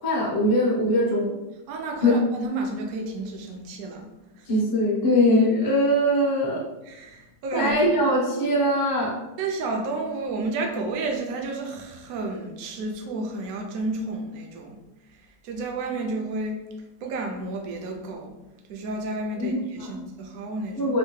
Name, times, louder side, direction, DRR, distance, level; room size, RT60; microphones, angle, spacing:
voice 1, 0.0-1.4 2.0-2.1 4.5-6.6 7.5-9.2 19.4-20.1 20.8-21.0, left 1 dB, 30° left, -3 dB, 0.4 m, -22 dB
voice 2, 1.7-4.1 6.8-7.8 9.4-14.8 15.4-16.6 17.0-18.3 18.7-20.9, right 3 dB, 70° right, 1 dB, 1.0 m, -31 dB
3.3 x 2.6 x 3.1 m, 1.0 s
omnidirectional pair, 1.7 m